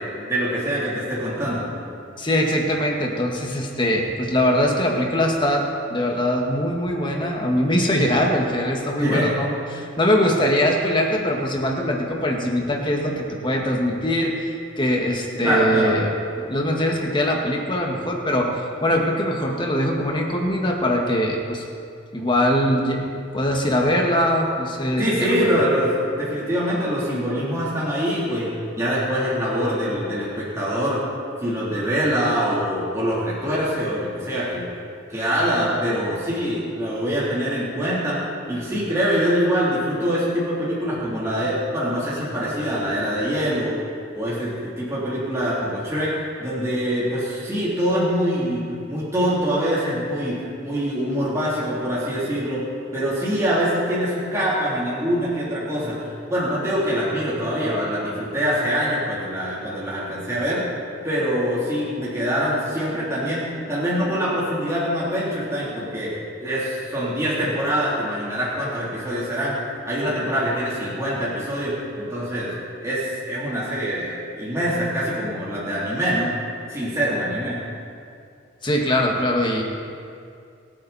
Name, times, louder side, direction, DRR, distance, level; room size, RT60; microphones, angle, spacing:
voice 1, 0.0-1.7 9.0-9.3 15.4-15.9 25.0-28.5 28.7-31.0 31.4-34.6 35.1-38.2 38.5-43.8 44.1-46.1 46.4-48.6 48.9-52.6 52.9-60.6 61.0-69.6 69.9-72.5 72.8-76.3 76.7-77.6, equal, 15° right, -8 dB, 3.5 m, -24 dB
voice 2, 2.2-16.1 16.4-21.6 22.1-25.5 78.6-79.6, equal, 25° left, 0 dB, 1.9 m, -22 dB
27.5 x 9.2 x 4.3 m, 2.4 s
head